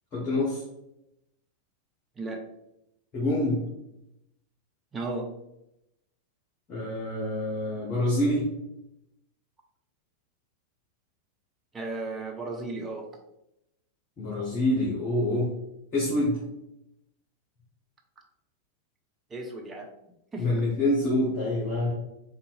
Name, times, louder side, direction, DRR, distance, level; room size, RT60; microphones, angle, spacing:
voice 1, 0.1-0.6 3.1-3.6 6.7-8.4 14.2-15.5 15.9-16.4 20.4-21.9, left 1 dB, 35° left, -6 dB, 1.2 m, -26 dB
voice 2, 4.9-5.3 11.7-13.1 19.3-19.9 20.3-20.5, right 2 dB, 15° right, 1 dB, 0.5 m, -34 dB
3.8 x 2.4 x 2.6 m, 0.86 s
figure-of-eight pair, 90°, 0 cm